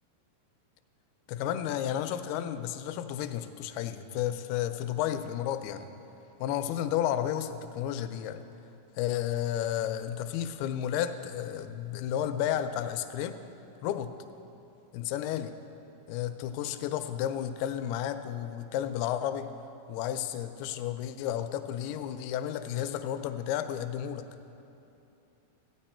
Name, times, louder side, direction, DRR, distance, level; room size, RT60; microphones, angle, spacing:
voice 1, 1.3-5.9 6.4-8.4 9.0-13.4 13.8-14.1 14.9-15.5 16.1-19.5 19.9-24.2, left 10 dB, 85° left, 10 dB, 2.5 m, -32 dB
15.0 x 9.3 x 4.3 m, 2.8 s
omnidirectional pair, 4.4 m